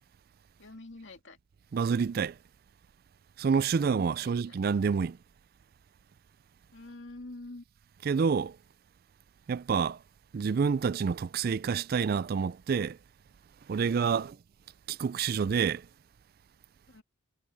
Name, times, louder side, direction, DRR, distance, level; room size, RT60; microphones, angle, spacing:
voice 1, 0.6-1.4 4.2-4.6 6.7-7.6 14.1-14.4 16.9-17.0, left 2 dB, 65° left, 2.3 m, -46 dB
voice 2, 1.7-2.3 3.4-5.2 8.0-8.6 9.5-10.0 10.3-13.0 13.7-14.4 14.9-15.8, right 6 dB, 50° right, 0.3 m, -28 dB
head